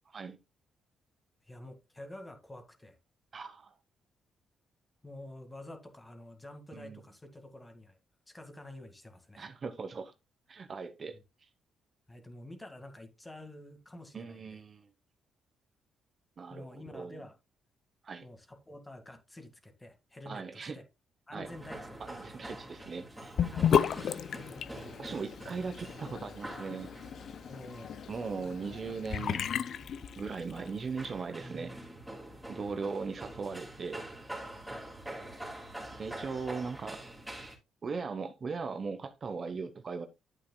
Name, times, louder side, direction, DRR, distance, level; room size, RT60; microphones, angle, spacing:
voice 1, 1.5-3.0 5.0-8.0 8.3-9.5 11.1-11.2 12.1-14.6 16.5-17.4 18.2-20.8 21.3-22.0 23.5-23.7 27.5-28.0 32.5-32.7 34.7-34.9, left 1 dB, 15° left, 1.9 m, -48 dB
voice 2, 3.3-3.8 6.7-7.0 9.4-10.1 10.5-11.2 14.1-14.9 16.4-17.2 18.0-18.2 20.3-20.8 21.3-21.5 22.0-23.3 25.0-26.9 28.1-29.4 30.2-31.7 32.5-34.0 36.0-37.1 37.8-40.1, right 5 dB, 40° right, 0.9 m, -39 dB
sound 1, 21.4-37.6, right 1 dB, 5° right, 2.9 m, -46 dB
Sink (filling or washing) / Bathtub (filling or washing), 23.4-30.7, left 8 dB, 60° left, 0.5 m, -33 dB
9.8 x 8.5 x 2.2 m
cardioid pair, 90°, 0 cm